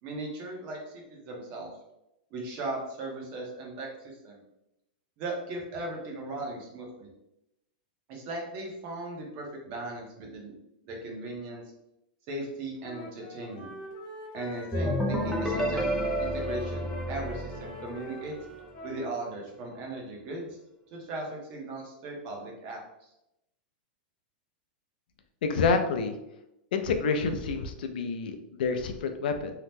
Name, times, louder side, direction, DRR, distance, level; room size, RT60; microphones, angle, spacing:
voice 1, 0.0-1.7 2.3-4.4 5.2-7.1 8.1-10.5 10.8-11.6 12.3-13.7 14.3-15.9 16.2-18.4 18.8-20.6 20.9-23.1, right 2 dB, 35° right, 0 dB, 0.7 m, -38 dB
Wind instrument woodwind instrument, 12.8-19.1, left 1 dB, 35° left, 0.8 m, -41 dB
sound 1, 14.7-18.4, equal, ahead, 0.3 m, -30 dB
voice 2, 25.4-26.2 26.7-29.5, left 4 dB, 70° left, 7 dB, 0.4 m, -28 dB
2.8 x 2.1 x 3.3 m, 0.87 s
supercardioid pair, 175°, 5 cm